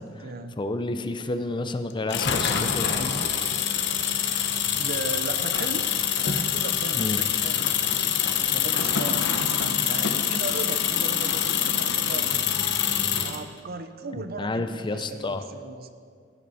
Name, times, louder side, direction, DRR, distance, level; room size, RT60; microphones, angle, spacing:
voice 1, 0.0-0.6 4.8-5.9 6.2-8.0 8.5-12.4 13.2-15.9, right 3 dB, 50° right, 10 dB, 0.7 m, -37 dB
voice 2, 0.6-3.3 6.9-7.2 14.2-15.5, left 2 dB, 25° left, 9 dB, 0.5 m, -30 dB
sound 1, 2.1-13.4, left 8 dB, 60° left, 0.9 m, -25 dB
16.0 x 11.0 x 4.2 m, 2.1 s
head